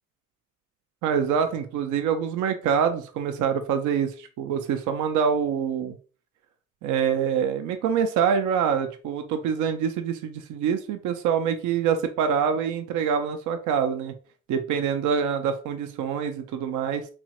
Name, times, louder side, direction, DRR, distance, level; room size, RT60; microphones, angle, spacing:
voice 1, 1.0-6.0 6.8-14.1 14.5-17.1, right 7 dB, 80° right, 7 dB, 0.4 m, -25 dB
3.1 x 2.3 x 2.8 m, 0.39 s
cardioid pair, 90°, 30 cm